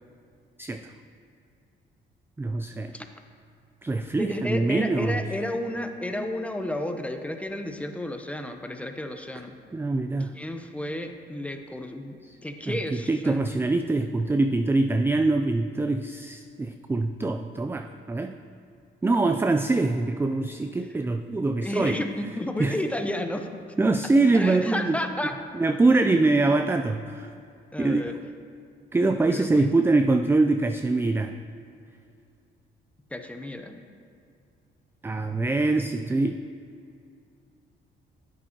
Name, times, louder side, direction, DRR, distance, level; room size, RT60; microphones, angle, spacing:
voice 1, 2.4-2.9 3.8-5.2 9.7-10.3 12.3-12.4 12.7-18.4 19.0-22.0 22.6-22.8 23.8-25.0 25.5-27.3 27.8-28.2 28.9-31.3 35.0-36.4, right 3 dB, 10° right, 7 dB, 0.3 m, -24 dB
voice 2, 4.2-9.6 10.3-12.2 12.4-13.4 21.6-23.5 24.3-25.3 26.0-26.4 27.7-28.2 29.3-29.7 33.1-33.9, left 1 dB, 5° left, 6 dB, 0.7 m, -32 dB
10.5 x 8.3 x 2.9 m, 2.5 s
cardioid pair, 90°, 20 cm